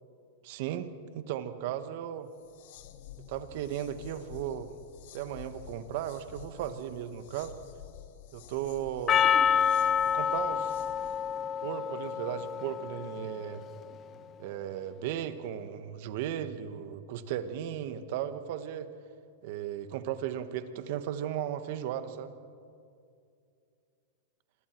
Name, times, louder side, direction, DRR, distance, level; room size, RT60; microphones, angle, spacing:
voice 1, 0.4-2.3 3.3-4.7 5.1-7.5 8.3-9.3 10.1-10.7 11.6-13.6 14.4-18.9 19.4-22.3, right 10 dB, 55° right, 10 dB, 1.5 m, -36 dB
sound 1, 2.3-11.4, left 11 dB, 60° left, 1.4 m, -50 dB
Percussion, 9.1-13.6, left 8 dB, 25° left, 0.7 m, -28 dB
28.0 x 23.0 x 4.7 m, 2.4 s
hypercardioid pair, 135°, 0 cm